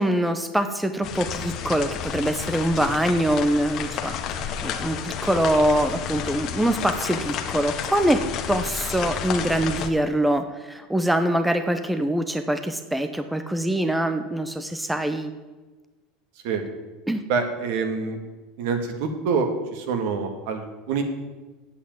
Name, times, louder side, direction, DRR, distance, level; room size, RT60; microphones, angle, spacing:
voice 1, 0.0-8.2 8.5-15.3 17.1-17.2, right 1 dB, 5° right, 8 dB, 0.7 m, -24 dB
sound 1, 1.0-9.9, left 8 dB, 45° left, 1.2 m, -31 dB
voice 2, 17.3-18.2 18.6-21.0, right 5 dB, 70° right, 6 dB, 2.0 m, -26 dB
8.6 x 8.1 x 9.1 m, 1.2 s
supercardioid pair, 135°, 0 cm